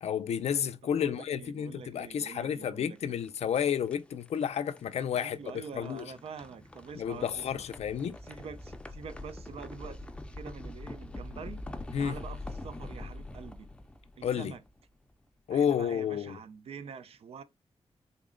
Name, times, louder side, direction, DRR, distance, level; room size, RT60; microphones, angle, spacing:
voice 1, 0.0-5.4 5.7-6.1 6.9-8.2 11.9-12.1 14.2-14.6 15.5-16.4, left 8 dB, 75° left, 0.4 m, -31 dB
voice 2, 1.0-3.2 5.1-7.6 8.2-11.6 12.0-13.7 14.2-14.6 15.5-17.4, right 6 dB, 65° right, 0.4 m, -46 dB
sound 1, 3.0-15.0, left 2 dB, 10° left, 0.4 m, -45 dB
3.7 x 2.1 x 3.7 m
wide cardioid pair, 130°, 11 cm